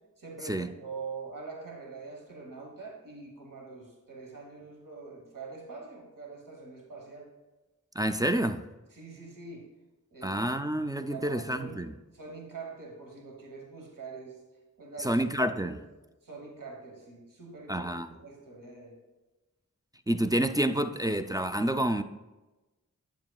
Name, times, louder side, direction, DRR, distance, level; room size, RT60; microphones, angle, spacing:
voice 1, 0.2-7.3 8.9-9.7 10.1-10.7 11.0-11.8 12.1-14.4 14.8-15.2 15.5-15.8 16.2-19.0, right 4 dB, 70° right, 1.3 m, -44 dB
voice 2, 8.0-8.6 10.2-11.9 15.0-15.8 17.7-18.2 20.1-22.0, right 1 dB, 10° right, 0.3 m, -28 dB
8.2 x 7.4 x 2.3 m
wide cardioid pair, 40°, 34 cm